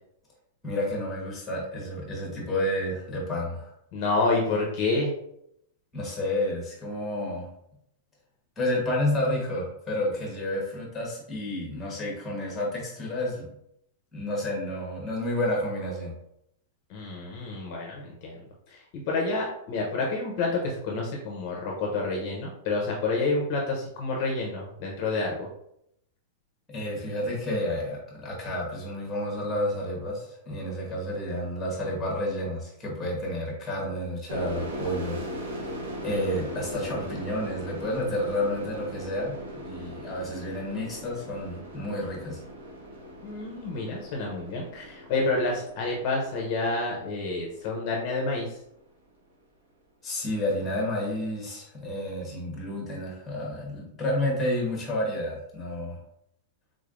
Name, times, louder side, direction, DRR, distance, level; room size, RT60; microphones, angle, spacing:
voice 1, 0.6-3.7 5.9-7.5 8.6-13.5 14.1-16.1 26.7-35.2 35.5-35.7 36.0-39.3 39.6-42.4 50.0-56.0, left 1 dB, 10° left, -2 dB, 1.2 m, -30 dB
voice 2, 3.9-5.1 16.9-18.4 18.7-18.8 19.1-25.5 43.2-48.5, left 3 dB, 40° left, -1 dB, 0.7 m, -28 dB
sound 1, 34.3-47.7, equal, 85° right, 1.3 m, -39 dB
3.7 x 3.2 x 2.5 m, 0.76 s
supercardioid pair, 165°, 0 cm